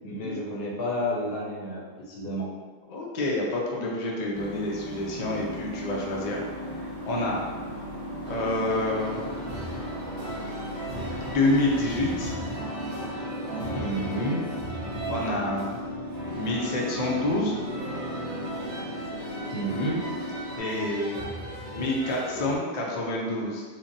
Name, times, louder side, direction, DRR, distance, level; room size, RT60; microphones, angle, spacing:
voice 1, 0.0-2.5 13.7-14.5 19.5-20.0, equal, 60° left, -3 dB, 0.7 m, -30 dB
voice 2, 2.9-6.4 7.0-7.4 8.2-9.3 11.2-12.3 15.1-15.8 16.3-17.5 20.6-21.2 21.7-23.6, left 2 dB, 75° left, -2 dB, 0.3 m, -28 dB
sound 1, 4.3-12.3, equal, 25° left, 0.6 m, -44 dB
sound 2, 4.8-20.6, equal, 15° right, 0.8 m, -37 dB
sound 3, 8.2-22.6, right 1 dB, 45° right, 0.7 m, -37 dB
3.1 x 2.1 x 2.6 m, 1.4 s
omnidirectional pair, 1.3 m